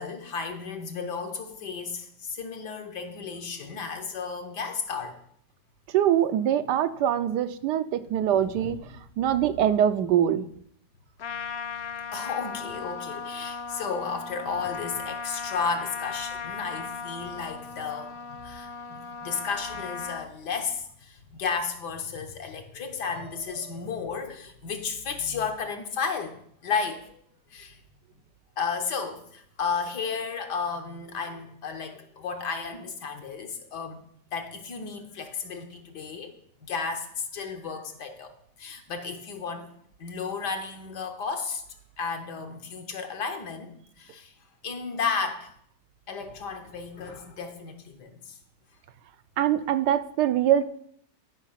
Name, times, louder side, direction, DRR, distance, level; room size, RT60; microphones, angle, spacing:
voice 1, 0.0-5.2 12.1-26.4 26.6-27.2 27.5-27.8 28.6-34.0 34.3-36.3 36.7-38.3 38.6-39.7 40.0-41.6 42.0-44.3 44.6-45.5 46.1-48.4, left 5 dB, 70° left, 5 dB, 1.8 m, -33 dB
voice 2, 5.9-10.5 49.4-50.6, right 10 dB, 80° right, 11 dB, 1.2 m, -23 dB
Trumpet, 11.2-20.3, left 5 dB, 90° left, 0.5 m, -37 dB
12.0 x 5.3 x 5.8 m, 0.67 s
omnidirectional pair, 1.9 m